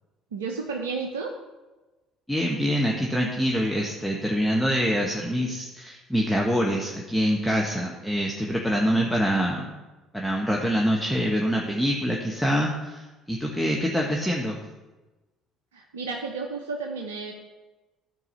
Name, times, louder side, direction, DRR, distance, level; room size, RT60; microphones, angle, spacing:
voice 1, 0.3-1.3 15.7-17.3, right 4 dB, 75° right, 2 dB, 0.7 m, -32 dB
voice 2, 2.3-9.7 10.1-14.6, equal, 5° left, -1 dB, 1.3 m, -25 dB
13.0 x 4.7 x 5.6 m, 1.2 s
figure-of-eight pair, 55°, 0 cm